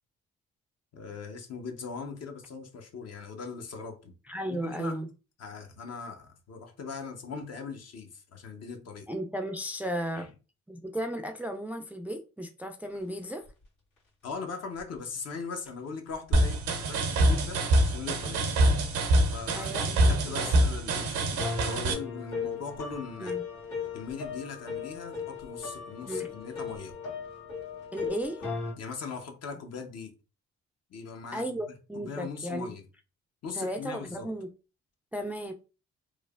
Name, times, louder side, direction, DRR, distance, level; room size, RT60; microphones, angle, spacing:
voice 1, 0.9-4.1 4.5-5.0 5.4-9.1 10.1-10.3 14.2-18.4 19.3-19.7 20.1-23.4 23.9-27.0 28.8-30.1 30.9-31.4 31.9-32.8 33.4-34.3, left 5 dB, 55° left, 0.8 m, -40 dB
voice 2, 4.3-5.1 9.1-10.3 10.7-13.4 19.5-20.6 23.2-23.4 26.0-26.3 27.9-28.4 31.3-32.7 33.6-34.5 35.1-35.5, equal, 5° right, 0.3 m, -35 dB
sound 1, 13.4-13.5 14.7-14.8 16.1-16.2 17.4-17.5 18.7-18.8 20.0-20.1 21.4-28.7, left 5 dB, 85° left, 1.5 m, -37 dB
sound 2, 16.3-21.9, right 1 dB, 85° right, 0.6 m, -25 dB
3.1 x 2.0 x 2.3 m
supercardioid pair, 55°, 30 cm